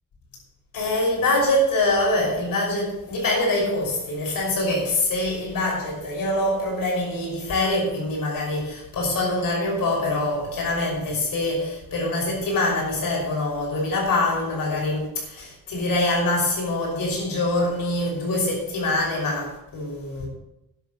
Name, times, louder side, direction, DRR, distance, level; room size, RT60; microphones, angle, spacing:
voice 1, 0.7-20.3, left 2 dB, 85° left, 5.7 m, -24 dB
11.0 x 7.7 x 7.7 m
wide cardioid pair, 170°, 33 cm